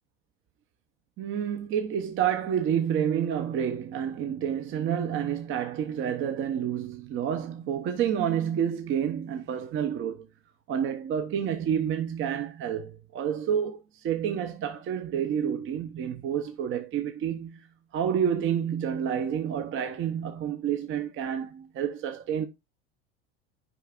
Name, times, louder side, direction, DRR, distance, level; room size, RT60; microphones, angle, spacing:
voice 1, 1.2-10.3 10.7-17.7 17.9-22.5, right 8 dB, 40° right, 0.8 m, -29 dB
9.9 x 4.8 x 2.3 m
hypercardioid pair, 80°, 32 cm